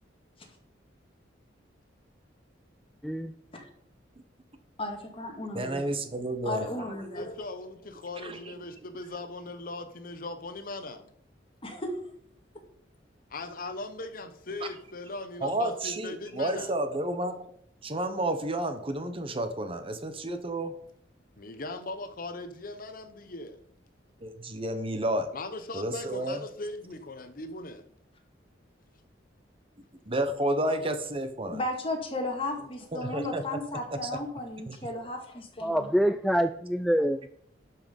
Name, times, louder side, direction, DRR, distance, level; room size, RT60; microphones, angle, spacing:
voice 1, 4.8-6.0 6.4-7.3 11.6-11.9 31.5-35.9, left 1 dB, 30° left, 2.1 m, -35 dB
voice 2, 5.5-6.7 8.2-8.5 14.6-14.7 15.4-17.5 17.8-20.8 24.2-25.3 25.7-26.4 30.1-31.6 32.9-33.6 33.9-34.2 34.7-34.8, right 1 dB, 30° right, 1.0 m, -31 dB
voice 3, 7.1-11.1 13.3-16.7 21.4-23.6 25.3-27.8 32.6-32.7, left 2 dB, 50° left, 0.9 m, -39 dB
voice 4, 35.6-37.4, equal, ahead, 0.3 m, -26 dB
11.5 x 5.7 x 5.3 m
head